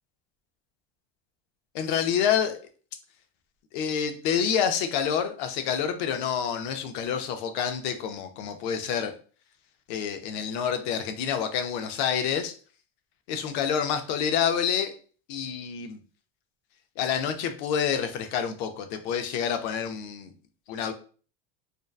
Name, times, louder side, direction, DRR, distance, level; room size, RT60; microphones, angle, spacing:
voice 1, 1.7-2.6 3.7-9.1 9.9-12.5 13.3-14.9 15.3-16.0 17.0-20.3 20.7-20.9, left 8 dB, 50° left, 7 dB, 0.4 m, -28 dB
2.6 x 2.1 x 2.3 m, 0.40 s
supercardioid pair, 165°, 31 cm